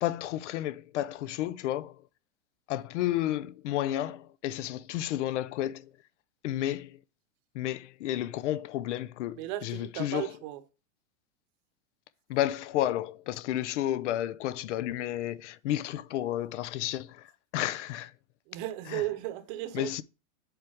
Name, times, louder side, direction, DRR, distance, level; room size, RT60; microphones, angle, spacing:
voice 1, 0.0-2.0 2.7-5.9 6.4-7.0 7.5-10.3 12.3-18.1 18.9-19.0 19.7-20.0, left 13 dB, 65° left, 0.6 m, -32 dB
voice 2, 9.3-10.6 18.5-20.0, right 14 dB, 40° right, 0.9 m, -35 dB
8.0 x 4.6 x 3.5 m
supercardioid pair, 155°, 38 cm